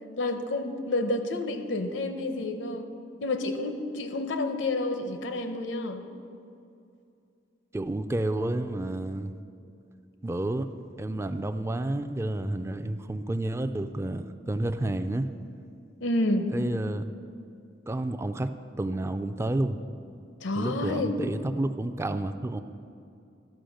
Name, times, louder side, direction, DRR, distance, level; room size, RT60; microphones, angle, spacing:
voice 1, 0.2-2.9 3.2-6.0 16.0-16.5 20.4-21.1, left 2 dB, 80° left, 7 dB, 0.8 m, -29 dB
voice 2, 7.7-9.3 10.2-10.7 11.0-15.3 16.5-17.0 17.9-18.5 18.8-19.8 20.6-22.6, right 1 dB, 15° right, 9 dB, 0.3 m, -30 dB
12.0 x 5.4 x 6.4 m, 2.5 s
head